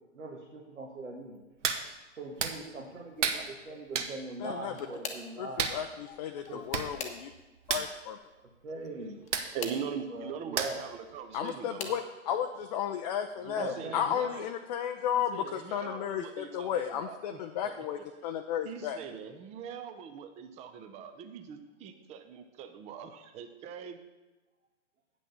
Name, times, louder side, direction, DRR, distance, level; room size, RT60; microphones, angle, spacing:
voice 1, 0.0-1.4 2.2-5.7 6.5-6.6 8.6-9.2 10.1-10.8 13.5-14.1, right 2 dB, 85° right, -1 dB, 1.7 m, -41 dB
Hands, 1.6-1.8 2.4-2.6 3.2-3.4 3.9-4.1 5.6-5.8 6.4-6.5 6.7-6.9 7.2-7.3 7.6-7.9 9.3-9.5 10.6-10.9 11.3-11.4, right 6 dB, 70° right, 1.1 m, -30 dB
sound 1, 4.3-5.4 6.3-7.6 9.2-9.9 11.0-12.1 12.8-13.2 13.6-13.7 15.0-15.1, left 5 dB, 20° left, 0.9 m, -43 dB
voice 2, 4.4-4.9 5.4-7.3 7.7-8.2 11.3-19.0, left 9 dB, 35° left, 6 dB, 0.5 m, -34 dB
voice 3, 9.5-12.0 13.4-14.5 15.1-17.7 18.0-18.1 18.6-24.0, right 7 dB, 15° right, 9 dB, 0.6 m, -42 dB
8.5 x 6.2 x 6.7 m, 1.1 s
hypercardioid pair, 125°, 38 cm